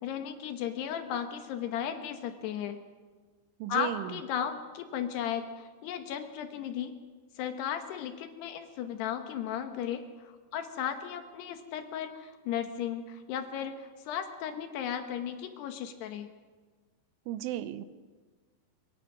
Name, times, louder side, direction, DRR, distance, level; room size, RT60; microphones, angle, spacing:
voice 1, 0.0-2.8 3.7-6.9 7.4-16.3, left 9 dB, 70° left, 7 dB, 2.9 m, -35 dB
voice 2, 3.6-4.1 17.3-17.8, right 13 dB, 85° right, 13 dB, 3.3 m, -34 dB
23.0 x 22.5 x 6.0 m, 1.4 s
omnidirectional pair, 5.5 m